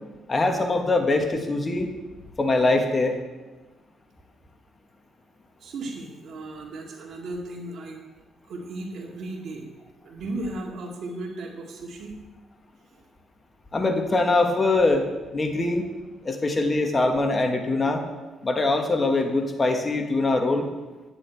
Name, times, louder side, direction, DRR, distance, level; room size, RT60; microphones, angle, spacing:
voice 1, 0.3-1.9 2.4-3.2 13.7-15.1 15.3-15.9 16.2-18.0 18.4-20.7, left 2 dB, 30° left, 4 dB, 1.5 m, -23 dB
voice 2, 5.6-8.0 8.5-9.7 10.0-12.2 12.9-13.0, right 2 dB, 65° right, 1 dB, 2.3 m, -35 dB
10.5 x 9.8 x 4.7 m, 1.2 s
cardioid pair, 90°, 0 cm